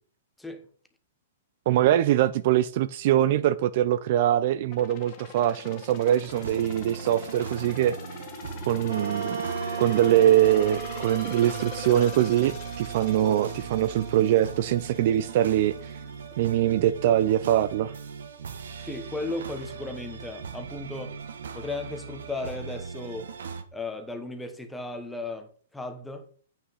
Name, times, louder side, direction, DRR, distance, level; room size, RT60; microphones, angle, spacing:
voice 1, 1.7-8.0 8.7-9.5 9.8-16.0 16.4-17.9, right 12 dB, 45° right, 0.4 m, -23 dB
sound 1, 4.7-15.4 15.8-15.9, left 6 dB, 30° left, 1.5 m, -42 dB
sound 2, 6.3-23.6, right 6 dB, 85° right, 1.4 m, -39 dB
Wind instrument woodwind instrument, 8.9-16.3, right 6 dB, 65° right, 1.6 m, -38 dB
voice 2, 18.8-21.2 21.5-23.3 23.7-26.5, left 2 dB, 5° left, 1.1 m, -36 dB
8.7 x 5.7 x 5.5 m
hypercardioid pair, 160°, 0 cm